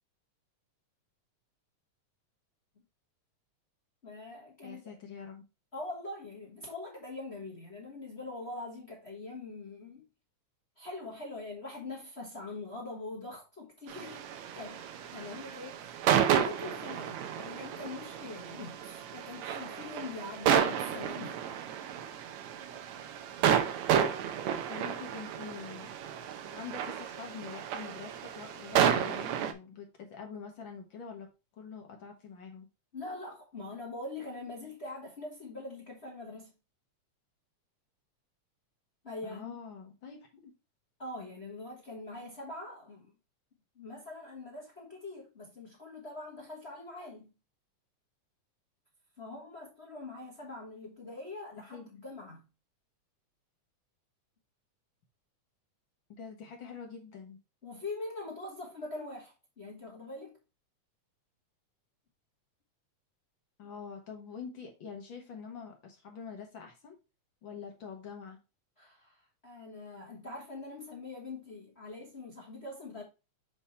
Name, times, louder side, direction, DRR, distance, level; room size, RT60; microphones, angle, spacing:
voice 1, 4.0-4.9 5.7-10.0 10.8-14.2 14.5-21.4 32.9-36.5 39.0-39.6 41.0-43.1 43.7-47.3 49.2-52.4 57.6-60.4 68.8-73.0, left 2 dB, 40° left, 0.9 m, -43 dB
voice 2, 4.6-5.4 24.7-25.9 26.5-31.3 31.5-32.7 39.2-40.5 51.7-51.9 56.1-57.4 63.6-67.0 67.4-68.4, left 6 dB, 60° left, 1.3 m, -45 dB
sound 1, 13.9-29.5, right 9 dB, 75° right, 1.9 m, -31 dB
7.1 x 3.5 x 4.2 m
omnidirectional pair, 3.5 m